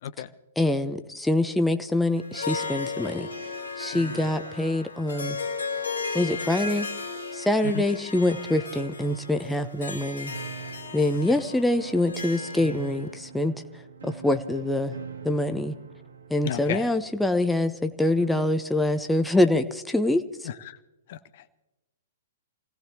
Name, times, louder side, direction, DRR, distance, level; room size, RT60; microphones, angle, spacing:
voice 1, 0.0-0.3 3.9-4.3 7.6-7.8 11.3-11.4 16.4-16.9 20.4-20.8 21.1-21.4, left 10 dB, 45° left, 13 dB, 0.7 m, -34 dB
voice 2, 0.6-3.3 3.8-5.4 6.1-6.9 7.3-10.3 10.9-13.5 14.0-14.9 15.2-15.8 16.3-20.2, left 1 dB, 5° left, 7 dB, 0.8 m, -25 dB
Harp, 2.2-13.1, left 4 dB, 75° left, 2.2 m, -35 dB
sound 1, 10.3-18.7, right 5 dB, 70° right, 1.6 m, -44 dB
28.0 x 17.5 x 2.9 m, 1.0 s
figure-of-eight pair, 110°, 0 cm